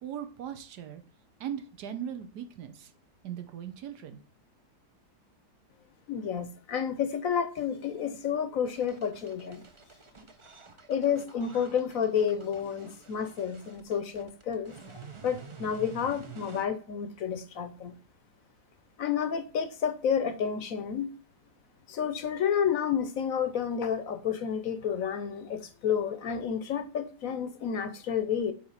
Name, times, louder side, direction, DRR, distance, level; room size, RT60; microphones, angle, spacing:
voice 1, 0.0-1.0 1.4-2.9 3.2-4.2, right 9 dB, 75° right, 1.5 m, -39 dB
voice 2, 6.1-9.6 10.9-14.9 15.2-18.0 19.0-21.1 21.9-28.5, left 7 dB, 65° left, 1.1 m, -30 dB
sound 1, 8.7-16.7, right 5 dB, 40° right, 0.4 m, -49 dB
8.8 x 3.2 x 5.6 m
omnidirectional pair, 1.7 m